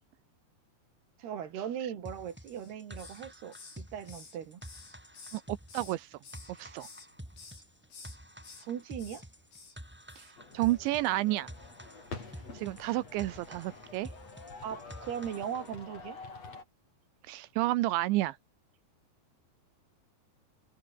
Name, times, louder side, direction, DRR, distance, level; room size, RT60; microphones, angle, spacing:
voice 1, 1.2-4.6 8.6-9.2 14.6-16.2, right 9 dB, 65° right, 4.4 m, -39 dB
sound 1, 2.0-15.7, equal, ahead, 4.1 m, -49 dB
Hiss, 2.5-3.3 3.5-6.0 6.2-7.1 7.4-7.6 7.9-8.7 9.0-9.2 9.5-9.8 10.1-10.3 10.6-10.8, left 4 dB, 60° left, 10.0 m, -51 dB
voice 2, 5.3-6.2 6.5-6.9 10.2-11.5 12.5-14.1 17.2-18.4, right 17 dB, 85° right, 3.3 m, -31 dB
sound 2, 10.4-16.6, left 4 dB, 35° left, 6.5 m, -47 dB
omnidirectional pair, 5.2 m